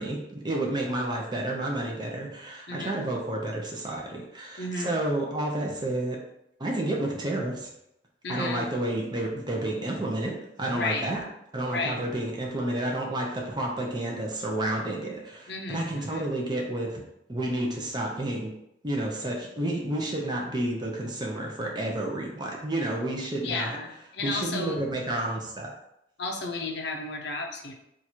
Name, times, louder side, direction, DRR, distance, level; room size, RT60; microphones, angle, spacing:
voice 1, 0.0-6.2 6.6-7.7 8.3-11.2 11.5-17.0 17.3-18.5 18.8-23.8 24.2-25.7, right 1 dB, 25° right, -1 dB, 0.6 m, -30 dB
voice 2, 4.6-4.9 8.2-8.6 10.7-11.1 11.7-12.0 15.5-16.3 23.4-24.8 26.2-27.7, left 3 dB, 60° left, 1 dB, 0.5 m, -33 dB
2.9 x 2.5 x 4.3 m, 0.81 s
head